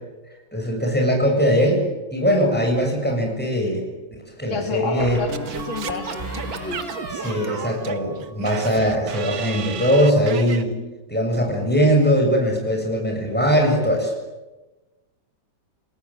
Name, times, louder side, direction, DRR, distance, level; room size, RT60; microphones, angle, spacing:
voice 1, 0.5-1.9 2.1-3.8 4.1-5.2 7.1-10.8 11.1-14.1, equal, 5° left, 1 dB, 7.7 m, -20 dB
sound 1, 2.3-3.1 5.0-8.5 8.8-9.3, right 1 dB, 30° right, 4.9 m, -36 dB
voice 2, 4.5-6.8 7.2-7.4, left 4 dB, 90° left, 5 dB, 3.5 m, -30 dB
Singing / Scratching (performance technique), 5.3-10.6, right 8 dB, 80° right, 2.1 m, -34 dB
29.5 x 19.0 x 9.0 m, 1.1 s
omnidirectional pair, 2.1 m